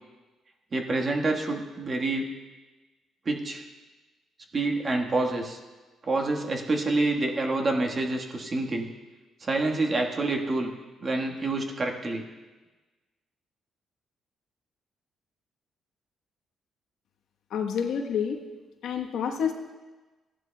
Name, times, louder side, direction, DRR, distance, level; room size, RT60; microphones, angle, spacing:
voice 1, 0.7-2.3 3.2-3.6 4.5-5.6 6.0-8.9 9.4-10.7 11.0-12.2, right 2 dB, 40° right, 1 dB, 1.4 m, -27 dB
voice 2, 17.5-18.4 18.8-19.5, left 7 dB, 75° left, 3 dB, 1.1 m, -28 dB
15.0 x 11.0 x 2.3 m, 1.2 s
cardioid pair, 90°, 0 cm